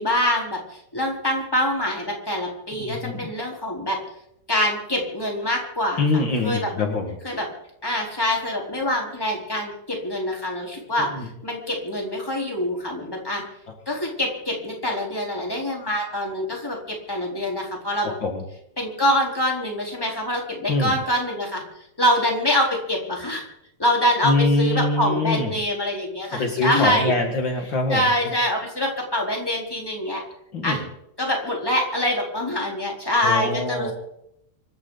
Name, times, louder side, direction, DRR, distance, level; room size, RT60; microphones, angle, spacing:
voice 1, 0.0-4.0 4.5-6.7 7.2-7.5 7.8-13.4 13.8-18.1 18.8-21.6 22.0-23.4 23.8-27.1 27.9-30.2 30.6-30.8 31.2-33.9, left 1 dB, 5° left, -1 dB, 3.2 m, -25 dB
voice 2, 2.8-3.3 6.0-7.1 11.0-11.3 18.2-18.4 20.7-21.0 24.2-25.5 26.3-28.3 30.5-30.9 33.2-33.9, left 2 dB, 80° left, 2 dB, 1.0 m, -24 dB
25.5 x 14.0 x 4.0 m, 0.78 s
omnidirectional pair, 5.5 m